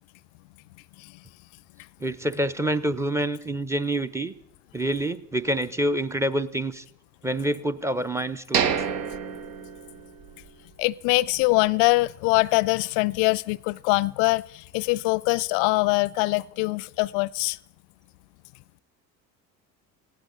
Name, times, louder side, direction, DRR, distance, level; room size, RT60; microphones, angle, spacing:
voice 1, 2.0-4.3 4.7-6.8 7.2-8.9, right 1 dB, 5° right, 0.5 m, -27 dB
sound 1, 8.5-10.5 10.8-10.9 11.4-11.6, right 7 dB, 70° right, 1.1 m, -28 dB
voice 2, 10.8-17.6, left 23 dB, 55° left, 0.5 m, -23 dB
19.0 x 15.5 x 3.8 m
hypercardioid pair, 65°, 50 cm